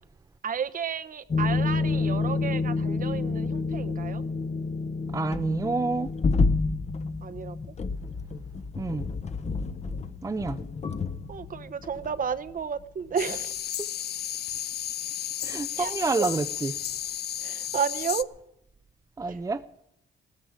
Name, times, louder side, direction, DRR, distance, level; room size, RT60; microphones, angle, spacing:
voice 1, 0.4-4.2 7.2-7.7 11.3-13.7 14.0-14.1 15.7-16.3 17.4-18.3 19.2-19.4, right 7 dB, 45° right, 0.8 m, -32 dB
sound 1, 1.3-12.8 13.1-13.4, left 3 dB, 35° left, 0.9 m, -29 dB
voice 2, 5.1-6.1 8.8-9.1 10.2-10.6 15.4-16.7 19.2-19.6, right 3 dB, 15° right, 0.5 m, -28 dB
sound 2, 13.2-18.2, left 11 dB, 55° left, 0.5 m, -33 dB
17.0 x 14.0 x 5.0 m
cardioid pair, 90°, 20 cm